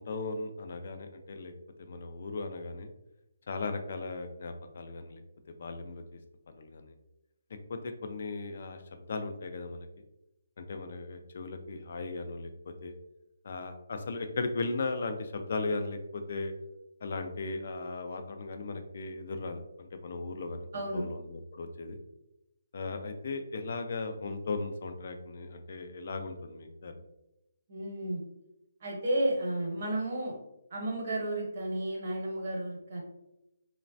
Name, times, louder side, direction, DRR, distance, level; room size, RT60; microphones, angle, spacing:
voice 1, 0.0-1.5 1.8-2.9 3.5-5.2 5.6-6.0 6.5-6.9 7.7-9.9 10.6-13.0 13.4-16.5 17.0-22.0 22.7-26.9, left 3 dB, 45° left, 7 dB, 0.3 m, -37 dB
voice 2, 20.7-21.1 27.7-28.2 28.8-30.4 30.7-33.0, right 1 dB, 40° right, -1 dB, 0.8 m, -32 dB
3.1 x 2.1 x 2.6 m, 0.89 s
hypercardioid pair, 170°, 0 cm